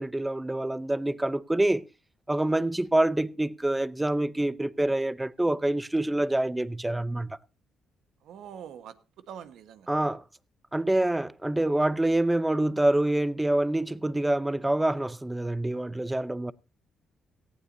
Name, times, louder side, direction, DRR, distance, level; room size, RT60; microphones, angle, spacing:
voice 1, 0.0-1.8 2.3-7.4 9.9-10.2 10.7-16.5, right 1 dB, 10° right, 0.6 m, -26 dB
voice 2, 8.2-8.9 9.3-9.9, right 9 dB, 80° right, 1.3 m, -44 dB
18.0 x 15.0 x 2.7 m
cardioid pair, 90°, 0 cm